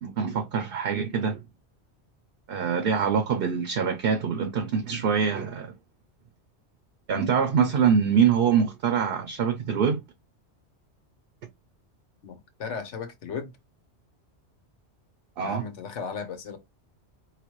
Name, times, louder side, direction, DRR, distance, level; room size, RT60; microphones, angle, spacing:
voice 1, 0.0-1.4 2.5-5.7 7.1-10.0 15.4-15.7, right 7 dB, 60° right, 0.7 m, -24 dB
voice 2, 12.2-13.5 15.4-16.6, left 6 dB, 85° left, 1.2 m, -36 dB
4.9 x 3.0 x 3.0 m
omnidirectional pair, 1.2 m